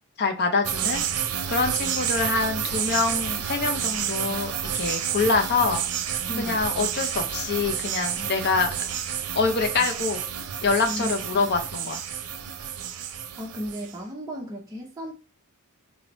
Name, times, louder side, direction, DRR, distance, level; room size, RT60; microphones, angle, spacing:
voice 1, 0.2-1.0 1.5-5.8 6.4-8.7 9.3-10.2 10.6-12.0, left 4 dB, 50° left, 0.6 m, -25 dB
sound 1, 0.6-13.9, right 9 dB, 85° right, 0.5 m, -30 dB
voice 2, 6.3-6.7 10.8-11.5 13.4-15.1, equal, 15° right, 0.7 m, -35 dB
4.0 x 3.2 x 3.0 m
head